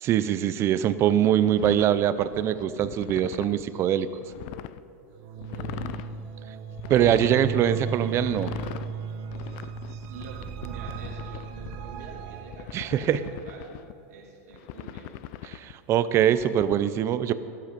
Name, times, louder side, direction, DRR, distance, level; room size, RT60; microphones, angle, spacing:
voice 1, 0.0-4.1 6.9-8.5 12.7-13.2 15.5-17.3, right 10 dB, 30° right, 14 dB, 0.6 m, -23 dB
sound 1, 1.6-3.6 4.1-4.8 5.4-6.2 6.8-7.6 8.2-8.9 9.3-11.8 12.5-13.9 14.5-15.7 16.4-16.7, left 14 dB, 50° left, 0.5 m, -40 dB
sound 2, 5.1-13.4, right 6 dB, 50° right, 1.0 m, -36 dB
voice 2, 5.5-6.1 9.9-13.8 14.1-15.1 17.2-17.3, right 5 dB, 75° right, -1 dB, 3.1 m, -46 dB
13.5 x 13.0 x 5.2 m, 2.6 s
supercardioid pair, 140°, 8 cm